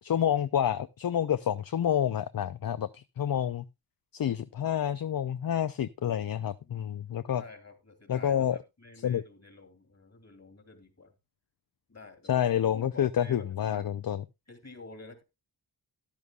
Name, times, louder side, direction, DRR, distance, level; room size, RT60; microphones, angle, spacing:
voice 1, 0.0-3.7 4.1-7.4 8.1-8.6 9.0-9.2 12.3-14.2, left 10 dB, 55° left, 0.6 m, -28 dB
voice 2, 6.6-7.0 7.4-11.1 11.9-12.3 12.7-13.8 14.5-15.2, left 3 dB, 40° left, 3.1 m, -49 dB
13.5 x 11.0 x 2.3 m
wide cardioid pair, 85°, 41 cm